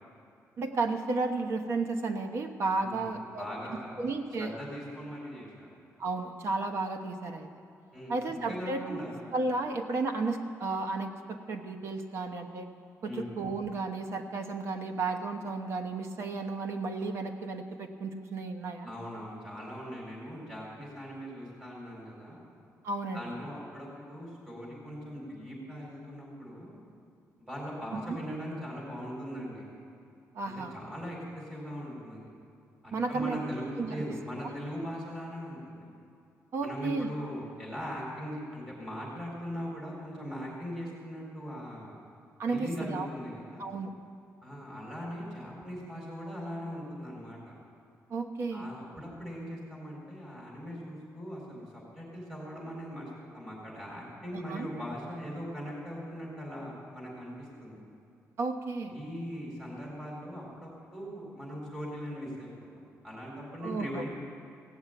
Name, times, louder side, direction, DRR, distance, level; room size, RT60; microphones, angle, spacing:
voice 1, 0.6-3.5 4.0-4.5 6.0-7.5 8.1-9.0 9.3-12.7 13.0-18.9 22.8-23.3 27.9-28.2 30.3-30.7 32.9-33.4 33.8-34.0 36.5-37.1 42.4-43.1 43.6-43.9 48.1-48.7 54.3-54.7 58.4-58.9 63.6-64.0, right 3 dB, 50° right, 6 dB, 1.0 m, -33 dB
voice 2, 2.8-4.0 4.4-5.7 7.9-9.3 13.0-13.3 18.8-22.4 23.1-26.7 27.4-29.7 30.7-32.3 32.8-35.9 36.6-42.0 42.5-43.7 44.4-47.5 48.5-57.3 57.6-57.8 58.9-62.5 63.0-64.1, equal, 15° right, -4 dB, 4.2 m, -40 dB
17.0 x 7.2 x 9.0 m, 2.4 s
cardioid pair, 165°, 6 cm